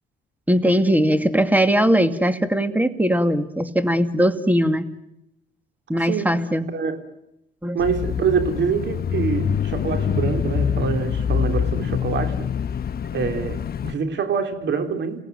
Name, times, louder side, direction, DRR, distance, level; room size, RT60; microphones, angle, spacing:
voice 1, 0.5-4.9 5.9-6.7 7.6-7.8, equal, 10° right, 10 dB, 2.4 m, -20 dB
voice 2, 7.7-12.5 13.1-15.2, right 6 dB, 65° right, 7 dB, 3.7 m, -25 dB
Bicycle / Mechanisms, 7.8-13.9, left 8 dB, 50° left, 1.1 m, -25 dB
29.5 x 18.0 x 9.3 m, 0.83 s
cardioid pair, 90°, 20 cm